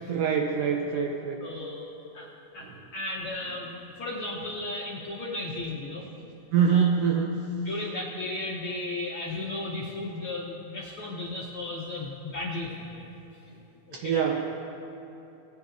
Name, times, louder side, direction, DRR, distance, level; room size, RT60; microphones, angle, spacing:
voice 1, 0.0-1.4 2.6-2.8 6.5-7.4 13.9-14.6, right 7 dB, 80° right, 1 dB, 1.4 m, -25 dB
voice 2, 1.4-1.9 2.1-2.3 2.5-2.7 2.9-6.0 6.7-6.9 7.6-13.1 13.9-14.1, left 2 dB, 70° left, -4 dB, 1.3 m, -35 dB
18.0 x 9.6 x 2.5 m, 3.0 s
omnidirectional pair, 3.3 m